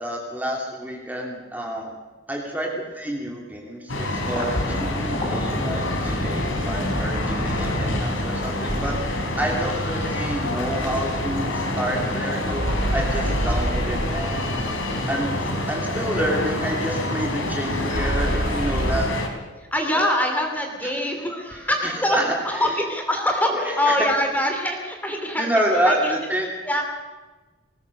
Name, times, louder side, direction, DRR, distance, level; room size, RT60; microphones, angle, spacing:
voice 1, 0.0-2.0 2.3-14.5 15.1-19.1 19.9-20.0 21.5-22.6 23.5-24.1 25.4-26.5, right 1 dB, 10° right, 0 dB, 2.6 m, -28 dB
sound 1, 3.9-19.3, left 1 dB, 85° left, 3.5 m, -27 dB
Thunder, 4.2-16.9 17.3-18.1 18.4-19.3, equal, 25° left, 5.7 m, -34 dB
sound 2, 8.7-9.3 12.5-14.6 17.9-19.0, right 1 dB, 50° right, 1.4 m, -26 dB
voice 2, 19.6-25.5 25.8-26.1 26.6-26.8, left 1 dB, 10° left, 3 dB, 2.7 m, -24 dB
21.0 x 19.0 x 6.6 m, 1.2 s
head